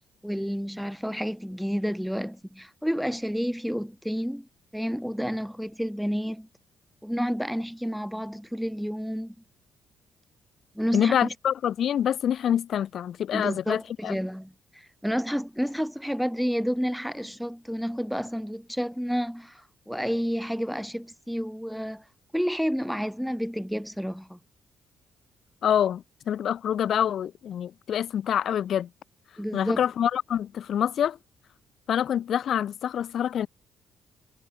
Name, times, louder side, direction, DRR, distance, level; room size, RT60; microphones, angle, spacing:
voice 1, 0.2-4.5 4.7-6.5 7.0-9.3 10.7-11.3 13.3-22.0 22.3-24.4 29.4-29.8, equal, ahead, 1.1 m, -30 dB
voice 2, 10.9-14.2 25.6-28.9 29.5-31.2 31.9-33.5, left 9 dB, 65° left, 1.7 m, -26 dB
cardioid pair, 90°, 0 cm